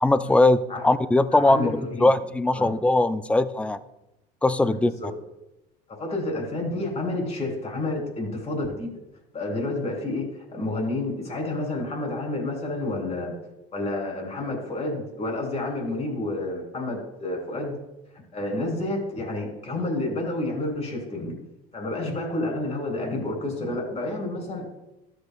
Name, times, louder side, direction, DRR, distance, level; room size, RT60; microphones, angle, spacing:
voice 1, 0.0-0.6 0.8-3.8 4.4-4.9, left 2 dB, 5° left, 13 dB, 0.4 m, -20 dB
voice 2, 1.3-2.1 2.5-2.7 4.6-5.1 6.0-9.0 9.3-13.3 13.7-17.7 18.3-21.3 21.7-24.7, left 2 dB, 30° left, 1 dB, 3.5 m, -30 dB
13.0 x 8.0 x 2.3 m, 0.94 s
supercardioid pair, 95°, 21 cm